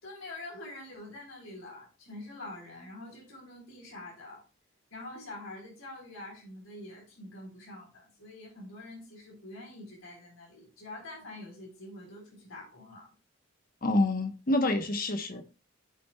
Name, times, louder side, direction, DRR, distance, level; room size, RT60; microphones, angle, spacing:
voice 1, 0.0-4.4 4.9-13.1, left 2 dB, 85° left, 4.0 m, -45 dB
voice 2, 13.8-15.4, left 2 dB, 45° left, 1.0 m, -27 dB
13.5 x 6.0 x 2.3 m
head